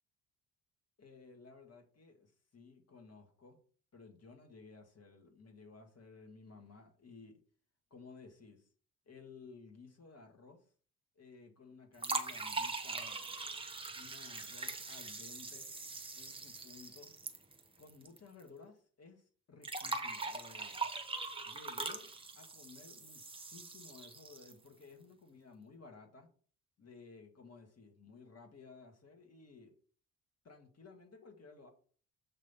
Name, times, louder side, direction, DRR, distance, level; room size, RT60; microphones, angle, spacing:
voice 1, 1.0-3.6 3.9-7.4 7.9-8.7 9.1-10.7 11.2-13.4 13.9-15.7 16.1-17.1 17.8-20.9 21.4-26.3 26.8-29.7 30.4-31.7, left 4 dB, 35° left, 2.1 m, -56 dB
sound 1, 12.0-18.2 18.4-18.5 19.6-24.7, right 3 dB, 10° right, 1.1 m, -41 dB
7.4 x 3.3 x 5.6 m
hypercardioid pair, 50°, 44 cm